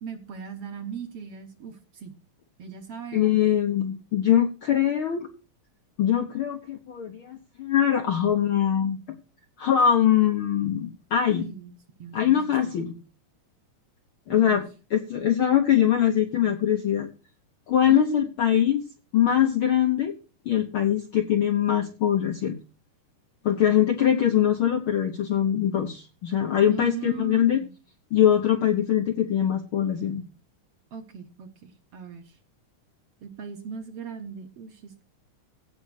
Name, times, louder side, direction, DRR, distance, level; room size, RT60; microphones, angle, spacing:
voice 1, 0.0-2.2 2.6-3.4 11.3-11.7 12.0-12.7 14.3-14.6 17.9-18.3 26.7-27.8 30.9-32.4 33.2-35.0, right 6 dB, 60° right, 7 dB, 1.9 m, -39 dB
voice 2, 3.1-5.3 6.0-9.0 9.6-11.5 12.1-13.0 14.3-14.6 14.9-17.1 17.7-18.8 19.1-20.1 20.4-22.6 23.4-27.6 28.1-30.2, left 10 dB, 65° left, 6 dB, 1.3 m, -22 dB
16.0 x 5.5 x 6.3 m, 0.34 s
omnidirectional pair, 3.7 m